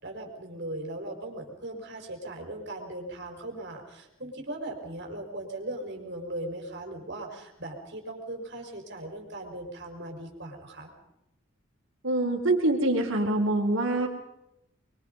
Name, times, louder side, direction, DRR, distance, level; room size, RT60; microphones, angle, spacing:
voice 1, 0.0-10.9, right 1 dB, 60° right, 3 dB, 5.2 m, -38 dB
voice 2, 12.0-14.1, right 2 dB, 80° right, 2 dB, 4.5 m, -25 dB
27.0 x 23.5 x 5.4 m, 0.85 s
head